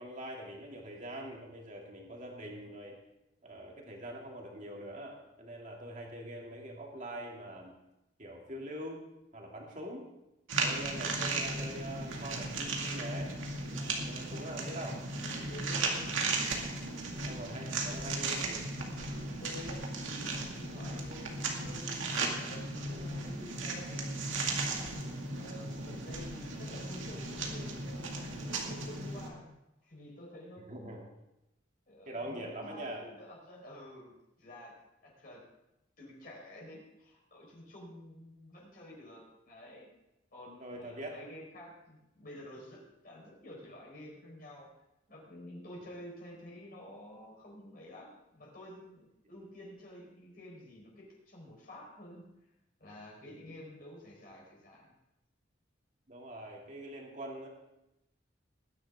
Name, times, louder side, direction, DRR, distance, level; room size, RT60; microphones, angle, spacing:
voice 1, 0.0-3.0 3.4-7.7 8.2-9.0 9.3-10.1 10.6-13.3 14.0-15.0 17.0-18.6 22.9-23.1 25.0-25.2 30.7-31.1 32.1-33.0 40.6-41.2 53.3-53.6 56.1-57.5, right 1 dB, 40° right, -1 dB, 2.6 m, -43 dB
sound 1, 10.5-29.3, right 3 dB, 85° right, 2.3 m, -36 dB
voice 2, 10.6-11.0 13.7-14.2 15.2-16.4 19.4-21.9 22.4-24.1 25.3-29.5 29.8-31.0 31.9-34.8 35.0-35.4 36.0-39.9 40.3-44.7 45.1-52.2 52.8-54.9, left 1 dB, 45° left, -3 dB, 4.4 m, -50 dB
20.5 x 10.5 x 3.6 m, 0.90 s
head